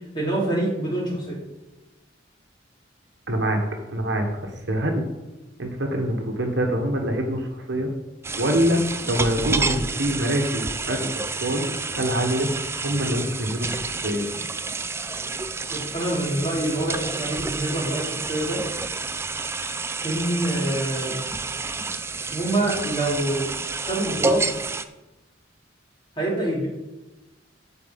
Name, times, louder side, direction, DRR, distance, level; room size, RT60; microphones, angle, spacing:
voice 1, 0.1-1.4 15.7-18.6 20.0-21.2 22.3-23.5 23.8-24.4 26.2-26.7, right 1 dB, 25° left, -4 dB, 3.2 m, -26 dB
voice 2, 3.3-3.6 3.9-5.1 5.6-7.9 8.4-8.8 9.1-11.1 11.4-12.5 12.8-14.3, right 1 dB, 60° right, 3 dB, 1.3 m, -25 dB
sound 1, 8.2-24.8, right 4 dB, 15° right, 0.4 m, -29 dB
14.0 x 4.7 x 5.3 m, 1.0 s
head